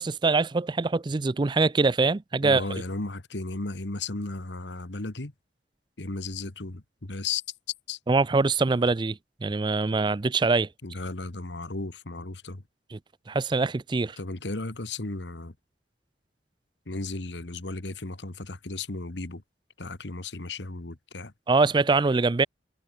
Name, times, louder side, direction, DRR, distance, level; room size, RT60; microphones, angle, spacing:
voice 1, 0.0-2.6 8.1-10.7 12.9-13.0 13.3-14.2 21.5-22.5, right 3 dB, 25° right, 0.4 m, -23 dB
voice 2, 2.4-5.3 6.0-7.4 7.9-8.0 10.8-12.6 14.2-15.5 16.9-19.4 19.8-21.3, left 3 dB, 85° left, 1.8 m, -35 dB
head